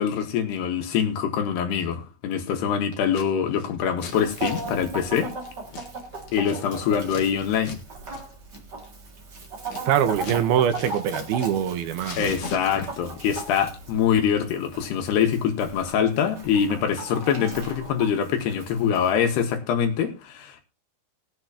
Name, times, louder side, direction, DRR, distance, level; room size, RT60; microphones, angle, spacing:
voice 1, 0.0-5.3 6.3-7.8 12.2-20.6, left 8 dB, 80° left, 3.6 m, -24 dB
Scissors, 2.9-3.3 3.5-7.2 7.6-7.8 8.1-8.2 8.5-10.4 10.7-11.7 11.9-13.1, left 4 dB, 50° left, 1.7 m, -39 dB
Chicken rooster, 4.0-19.5, right 3 dB, 35° right, 2.2 m, -38 dB
voice 2, 9.9-12.3, right 9 dB, 75° right, 2.8 m, -23 dB
20.0 x 7.9 x 2.9 m
omnidirectional pair, 4.6 m